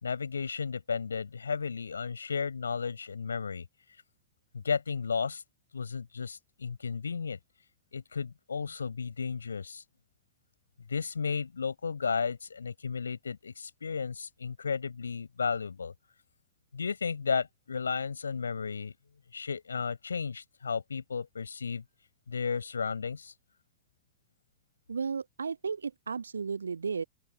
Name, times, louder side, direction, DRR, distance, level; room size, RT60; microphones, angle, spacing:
voice 1, 0.0-3.6 4.5-5.4 5.7-7.4 7.9-9.8 10.9-15.9 16.7-18.9 19.3-21.8 22.3-23.3, left 5 dB, 75° left, 4.7 m, -33 dB
voice 2, 24.9-27.0, right 5 dB, 75° right, 1.1 m, -34 dB
open air
figure-of-eight pair, 90°, 0 cm